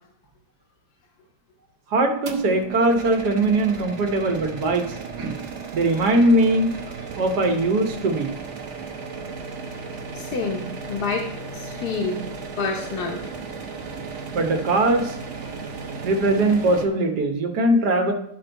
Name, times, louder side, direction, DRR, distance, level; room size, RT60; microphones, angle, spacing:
voice 1, 1.9-5.3 5.7-6.7 7.2-8.3 14.3-15.2 16.0-18.1, right 2 dB, 80° right, 5 dB, 1.5 m, -21 dB
sound 1, 2.3-16.9, right 4 dB, 50° right, 1.1 m, -35 dB
voice 2, 10.1-11.2 11.5-12.3 12.6-13.2, left 4 dB, 75° left, 0 dB, 1.5 m, -28 dB
11.5 x 4.0 x 4.5 m, 0.76 s
omnidirectional pair, 1.7 m